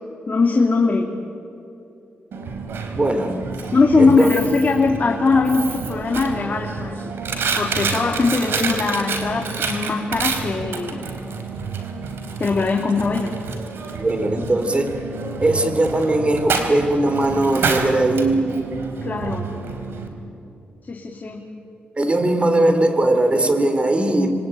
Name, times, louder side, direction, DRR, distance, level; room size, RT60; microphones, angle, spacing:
voice 1, 0.3-1.1 3.7-7.1 7.6-11.1 12.4-13.3 19.0-19.5 20.9-21.5, left 4 dB, 45° left, 0 dB, 3.0 m, -20 dB
Coin (dropping), 2.3-20.1, right 4 dB, 75° right, 3.7 m, -28 dB
voice 2, 2.9-3.4 4.0-4.3 13.9-15.0 15.4-18.6 22.0-24.3, right 1 dB, 30° right, 8 dB, 3.7 m, -19 dB
27.5 x 23.5 x 9.2 m, 2.7 s
cardioid pair, 65°, 4 cm